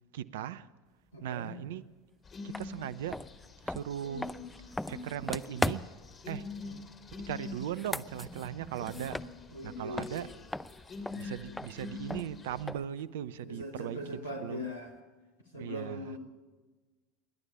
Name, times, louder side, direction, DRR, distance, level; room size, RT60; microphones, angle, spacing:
voice 1, 0.1-0.7 1.2-1.8 2.4-3.2 3.6-4.3 4.9-5.9 6.3-6.5 7.1-9.3 9.6-10.3 11.1-14.0 14.4-14.7 15.5-16.2, right 10 dB, 70° right, 0.7 m, -38 dB
voice 2, 1.1-1.5 6.6-6.8 9.5-10.4 11.5-11.6 13.4-15.0 15.5-16.2, left 1 dB, 85° left, 2.3 m, -41 dB
sound 1, 2.2-12.6, left 3 dB, 30° left, 3.0 m, -45 dB
sound 2, 2.5-2.7 3.1-6.1 7.6-9.7 10.0-13.0, left 1 dB, 5° left, 0.6 m, -38 dB
28.0 x 11.5 x 8.3 m
figure-of-eight pair, 75°, 0 cm